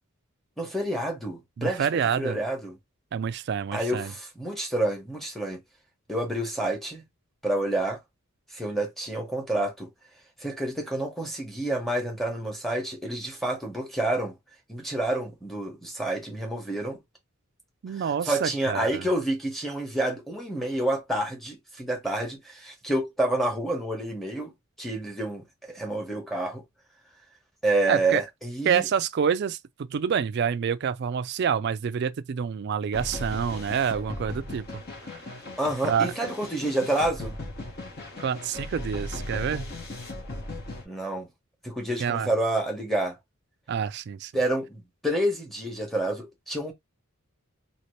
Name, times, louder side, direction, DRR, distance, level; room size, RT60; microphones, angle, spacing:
voice 1, 0.6-2.8 3.7-5.6 6.1-7.0 7.4-8.0 8.5-9.9 10.4-14.3 14.7-17.0 17.9-24.5 24.8-26.6 27.6-28.9 35.6-37.4 40.8-41.3 41.6-43.2 44.3-46.7, right 1 dB, ahead, 1.0 m, -29 dB
voice 2, 1.6-2.4 3.1-4.1 17.8-19.0 27.9-28.2 28.6-34.7 35.8-36.1 38.2-39.7 42.0-42.3 43.7-44.3, right 7 dB, 50° right, 0.3 m, -27 dB
sound 1, 32.9-40.8, left 1 dB, 45° left, 1.1 m, -37 dB
2.9 x 2.9 x 3.1 m
head